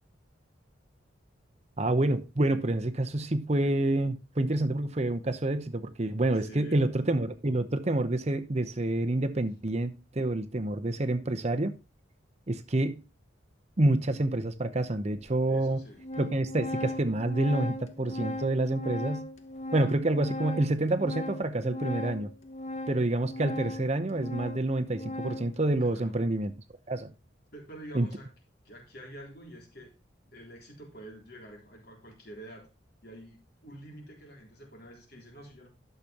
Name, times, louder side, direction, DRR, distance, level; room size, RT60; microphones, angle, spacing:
voice 1, 1.8-11.7 12.5-13.0 13.8-15.8 16.2-19.3 19.7-22.3 22.9-26.5 26.9-27.1 27.9-28.1, right 2 dB, 35° right, 0.8 m, -28 dB
voice 2, 6.4-6.8 15.5-16.0 25.8-26.3 27.5-28.3 28.6-29.9 30.3-32.7 33.0-35.7, right 1 dB, 55° left, 3.7 m, -47 dB
Organ, 14.3-14.4 15.3-15.4 15.7-25.6, left 1 dB, 35° left, 1.1 m, -38 dB
12.0 x 6.7 x 2.9 m
head